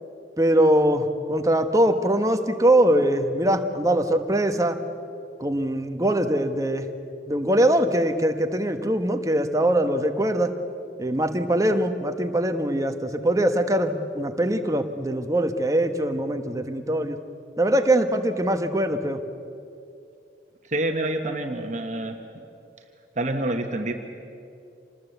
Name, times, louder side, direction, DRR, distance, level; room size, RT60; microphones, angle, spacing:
voice 1, 0.4-4.8 5.4-6.9 7.3-10.5 11.0-17.2 17.6-19.2, right 1 dB, 20° right, 7 dB, 1.2 m, -22 dB
voice 2, 20.6-22.4 23.1-23.9, right 1 dB, 40° right, 4 dB, 1.5 m, -27 dB
26.5 x 20.0 x 8.1 m, 2.6 s
head